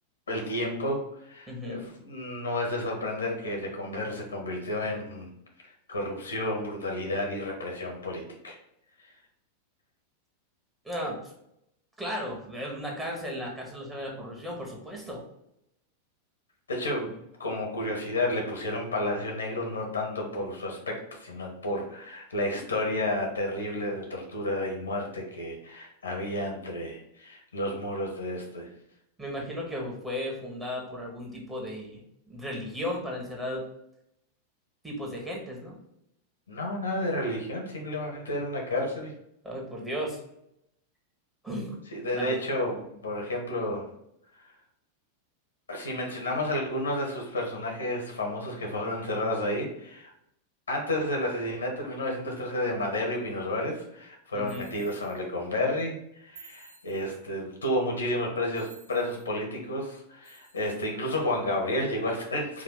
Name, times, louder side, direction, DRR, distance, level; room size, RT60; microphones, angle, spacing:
voice 1, 0.3-5.3 5.9-8.6 16.7-28.7 36.5-39.1 41.9-43.8 44.4-44.5 45.7-50.1 50.7-56.0 56.2-62.6, left 1 dB, 75° left, 1 dB, 1.1 m, -31 dB
voice 2, 1.5-1.9 10.8-11.2 12.0-15.2 29.2-32.0 32.3-33.6 34.8-35.8 39.4-40.2 41.4-41.8 42.1-42.4 54.3-54.7, equal, 10° right, -2 dB, 1.5 m, -35 dB
sound 1, 54.5-55.2 56.3-57.2 58.5-59.3 60.2-60.9, right 5 dB, 65° right, 1.6 m, -53 dB
4.9 x 2.6 x 3.8 m, 0.78 s
figure-of-eight pair, 90°, 0 cm